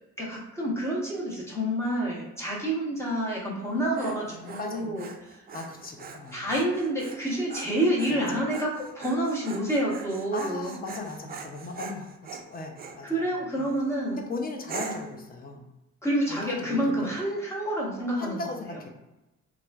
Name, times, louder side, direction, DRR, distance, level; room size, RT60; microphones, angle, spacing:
voice 1, 0.2-5.1 6.3-10.7 13.0-14.2 16.0-18.4, right 1 dB, 10° left, -5 dB, 1.0 m, -28 dB
Dog, 3.6-13.0 13.6-14.0 14.7-15.2, right 5 dB, 30° right, 0.4 m, -42 dB
voice 2, 4.3-5.1 5.5-6.4 8.1-8.4 10.3-13.3 13.6-13.7 14.1-15.7 16.3-17.1 18.2-18.9, left 3 dB, 30° left, 3 dB, 0.5 m, -37 dB
3.1 x 2.4 x 2.3 m, 0.98 s
cardioid pair, 90°, 30 cm